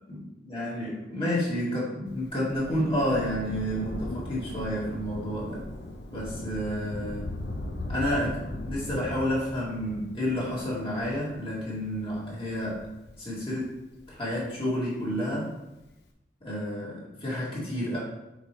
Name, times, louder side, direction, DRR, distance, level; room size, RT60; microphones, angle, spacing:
voice 1, 0.1-5.6 6.1-7.3 7.9-12.8 13.2-13.7 14.1-15.5 16.4-18.0, equal, 30° left, -6 dB, 2.3 m, -30 dB
Thunder, 2.1-14.9 15.8-15.9, left 1 dB, 65° left, 0.9 m, -39 dB
7.8 x 5.0 x 3.1 m, 0.95 s
head